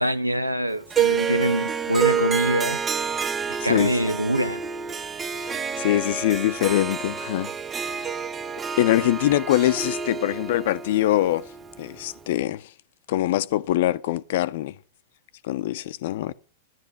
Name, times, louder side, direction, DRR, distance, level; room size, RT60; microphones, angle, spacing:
voice 1, 0.0-2.8 3.5-4.6, right 1 dB, 90° right, 1.0 m, -24 dB
Harp, 0.9-12.2, right 7 dB, 15° right, 0.6 m, -28 dB
voice 2, 3.6-4.0 5.4-7.5 7.8-8.1 8.8-11.4 11.8-12.7 13.1-14.8 15.4-16.3, left 14 dB, 55° left, 0.7 m, -23 dB
14.0 x 11.5 x 6.1 m
figure-of-eight pair, 95°, 0 cm